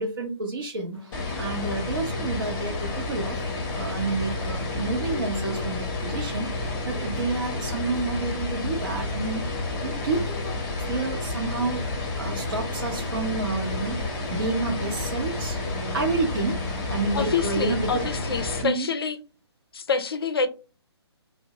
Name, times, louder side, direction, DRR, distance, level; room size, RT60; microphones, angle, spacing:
voice 1, 0.0-3.4 3.7-11.9 12.2-15.6 15.9-16.6 16.9-18.0 18.6-18.9, right 3 dB, 50° right, 0.7 m, -30 dB
sound 1, 0.9-18.5, equal, 80° right, 1.0 m, -44 dB
sound 2, 1.1-18.6, left 3 dB, 20° left, 0.8 m, -30 dB
voice 2, 17.1-19.2 19.7-20.5, left 5 dB, 60° left, 0.5 m, -27 dB
2.6 x 2.1 x 3.7 m
figure-of-eight pair, 135°, 14 cm